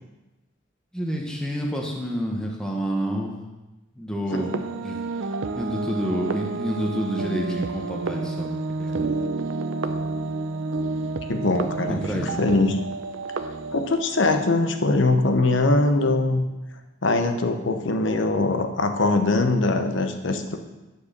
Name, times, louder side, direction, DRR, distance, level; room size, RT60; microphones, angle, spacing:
voice 1, 0.9-3.3 4.0-4.5 4.8-5.0 5.5-8.5 8.8-9.0 11.9-12.3, equal, 5° left, -1 dB, 1.1 m, -28 dB
sound 1, 4.3-14.4, right 3 dB, 80° right, 0.6 m, -30 dB
voice 2, 11.3-12.8 13.7-16.4 17.0-20.6, left 2 dB, 70° left, 6 dB, 0.9 m, -22 dB
10.0 x 4.7 x 6.6 m, 1.1 s
head